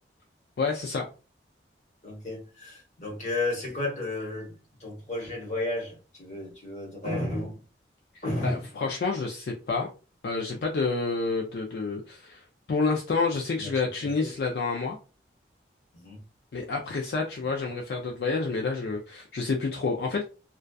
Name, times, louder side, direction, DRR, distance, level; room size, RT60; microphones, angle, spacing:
voice 1, 0.6-1.1 8.1-9.9 10.2-15.0 16.5-20.2, left 4 dB, 65° left, 0.3 m, -29 dB
voice 2, 2.0-7.6 8.2-8.7 13.3-14.3 15.9-16.2, left 2 dB, 40° left, 1.0 m, -33 dB
2.5 x 2.2 x 2.2 m
head